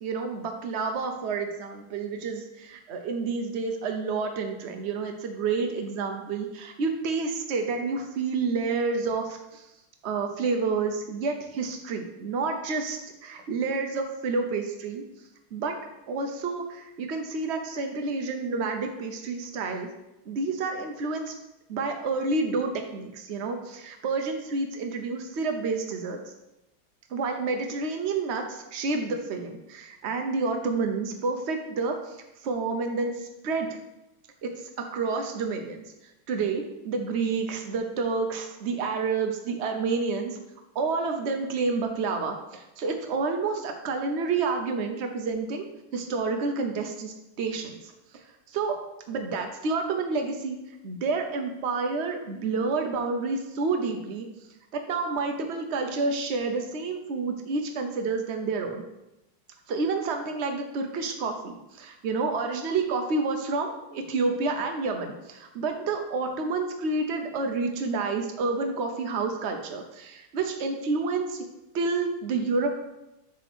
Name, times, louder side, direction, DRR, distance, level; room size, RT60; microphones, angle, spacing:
voice 1, 0.0-9.7 10.0-15.0 15.5-15.7 16.1-19.9 20.3-21.3 21.7-26.3 27.1-33.7 34.4-40.4 40.7-45.6 45.9-48.8 49.1-50.6 50.8-54.3 54.7-58.8 59.7-71.5 71.7-72.7, right 4 dB, 85° right, 4 dB, 0.5 m, -29 dB
8.2 x 3.7 x 6.1 m, 0.94 s
omnidirectional pair, 2.2 m